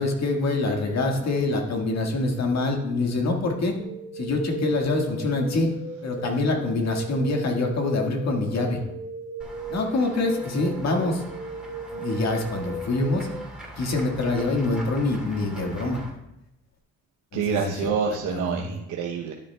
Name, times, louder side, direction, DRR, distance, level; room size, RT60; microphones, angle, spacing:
voice 1, 0.0-3.7 4.1-5.7 6.0-8.8 9.7-11.2 11.9-13.3 13.8-16.0 17.3-17.7 18.3-18.7, left 2 dB, 60° left, 2 dB, 1.6 m, -25 dB
sound 1, 3.8-13.4, right 2 dB, 35° right, 2.3 m, -37 dB
Run / Walk footsteps / Bell, 9.4-16.1, right 1 dB, 5° right, 2.7 m, -42 dB
voice 2, 17.3-19.3, right 6 dB, 75° right, 0 dB, 0.8 m, -27 dB
12.5 x 7.6 x 2.2 m, 0.88 s
cardioid pair, 90°, 30 cm